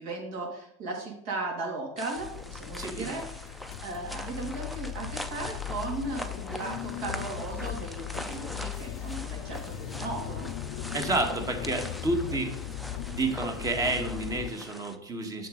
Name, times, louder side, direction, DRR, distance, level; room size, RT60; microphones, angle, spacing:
voice 1, 0.0-10.5, right 3 dB, 60° right, 0 dB, 2.7 m, -37 dB
sound 1, 2.0-15.0, equal, ahead, 0.6 m, -42 dB
sound 2, 2.2-14.5, left 11 dB, 60° left, 0.5 m, -38 dB
voice 2, 2.8-3.1 10.9-12.5 13.1-15.5, right 2 dB, 25° right, 4 dB, 1.5 m, -30 dB
6.8 x 6.1 x 3.8 m, 0.74 s
supercardioid pair, 105°, 15 cm